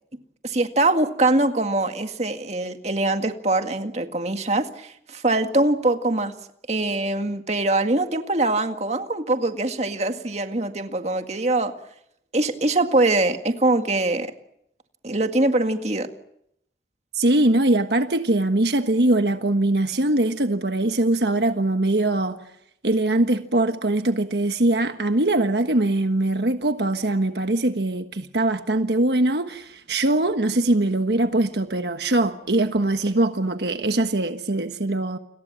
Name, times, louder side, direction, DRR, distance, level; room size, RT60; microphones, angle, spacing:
voice 1, 0.4-6.3 6.7-11.7 12.3-14.3 15.0-16.1, right 2 dB, 40° right, 2.0 m, -23 dB
voice 2, 17.1-22.4 22.8-35.2, right 2 dB, 70° right, 1.4 m, -22 dB
29.5 x 22.0 x 7.5 m
head